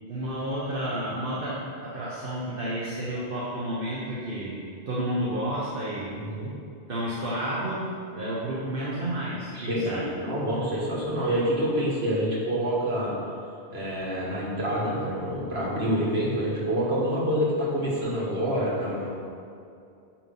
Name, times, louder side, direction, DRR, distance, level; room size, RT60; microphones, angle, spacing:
voice 1, 0.1-4.6 4.9-6.2 6.9-10.0, right 1 dB, 60° right, -7 dB, 1.2 m, -31 dB
voice 2, 6.1-6.5 9.5-9.9 10.2-13.2 13.7-19.1, equal, 75° right, -6 dB, 1.8 m, -27 dB
8.9 x 3.0 x 5.3 m, 2.5 s
omnidirectional pair, 1.1 m